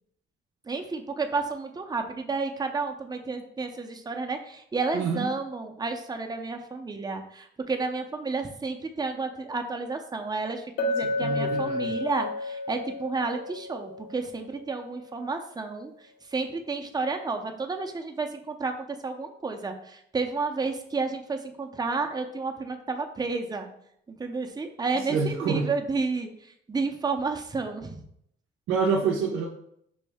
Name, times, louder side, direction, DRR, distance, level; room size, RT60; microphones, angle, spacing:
voice 1, 0.7-15.9 16.3-18.7 19.0-23.7 24.1-28.0, right 4 dB, 20° right, 4 dB, 0.5 m, -31 dB
voice 2, 4.9-5.3 11.0-11.9 25.1-25.7 28.7-29.5, right 5 dB, 85° right, -1 dB, 0.5 m, -27 dB
Chink clink, 10.8-14.8, left 2 dB, 70° left, 0.5 m, -31 dB
5.4 x 2.0 x 3.4 m, 0.72 s
cardioid pair, 90°, 20 cm